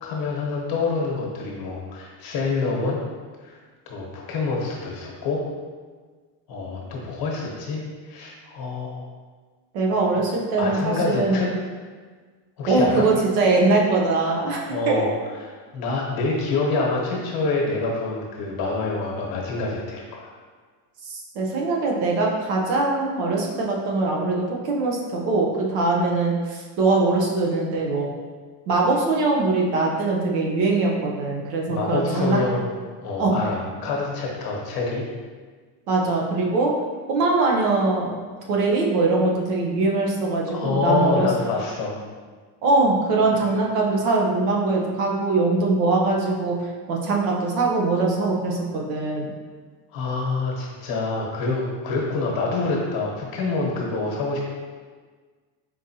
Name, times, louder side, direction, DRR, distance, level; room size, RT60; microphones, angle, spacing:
voice 1, 0.0-3.0 3.4-3.6 3.9-5.4 6.5-9.0 10.6-11.5 12.6-13.1 14.7-15.1 15.7-20.3 31.7-32.7 33.0-35.0 40.5-42.0 49.9-54.4, left 3 dB, 50° left, -2 dB, 1.1 m, -26 dB
voice 2, 9.7-11.4 12.7-15.0 21.0-28.1 28.7-32.4 33.2-33.4 35.9-36.7 37.1-38.1 38.5-41.3 42.6-46.6 46.9-49.3, right 3 dB, 75° right, -1 dB, 1.0 m, -22 dB
4.5 x 3.8 x 2.8 m, 1.5 s
cardioid pair, 140°, 47 cm